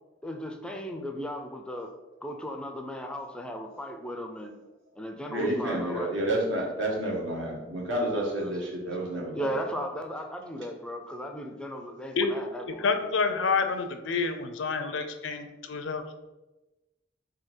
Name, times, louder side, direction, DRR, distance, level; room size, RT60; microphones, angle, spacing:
voice 1, 0.2-1.9 2.2-4.6 5.0-6.2 8.4-8.6 9.3-13.1, equal, 5° left, 4 dB, 0.3 m, -36 dB
voice 2, 5.3-9.5, right 1 dB, 80° right, -2 dB, 1.2 m, -30 dB
voice 3, 12.8-16.0, left 4 dB, 80° left, 7 dB, 0.5 m, -28 dB
3.7 x 2.7 x 4.3 m, 1.1 s
head